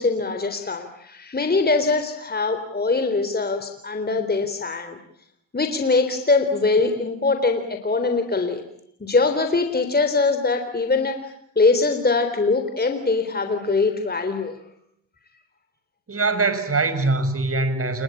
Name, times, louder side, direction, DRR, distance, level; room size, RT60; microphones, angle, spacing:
voice 1, 0.0-5.0 5.5-8.6 9.0-14.6, left 3 dB, 20° left, 7 dB, 3.8 m, -22 dB
voice 2, 16.1-18.0, right 3 dB, 30° right, 11 dB, 6.0 m, -22 dB
29.0 x 22.5 x 8.6 m, 0.71 s
supercardioid pair, 65°, 43 cm